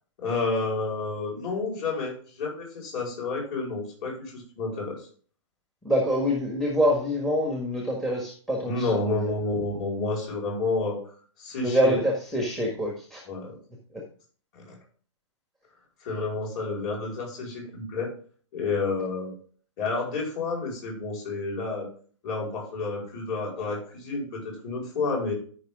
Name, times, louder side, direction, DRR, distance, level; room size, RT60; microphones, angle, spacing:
voice 1, 0.2-5.1 8.7-11.0 11.4-11.9 13.3-13.6 14.5-14.7 16.0-18.1 18.5-19.4 19.8-21.9 22.2-25.3, left 3 dB, 30° left, -2 dB, 4.9 m, -30 dB
voice 2, 5.8-9.3 11.6-13.2, equal, ahead, -1 dB, 1.6 m, -25 dB
13.5 x 5.8 x 3.7 m, 0.43 s
hypercardioid pair, 160°, 15 cm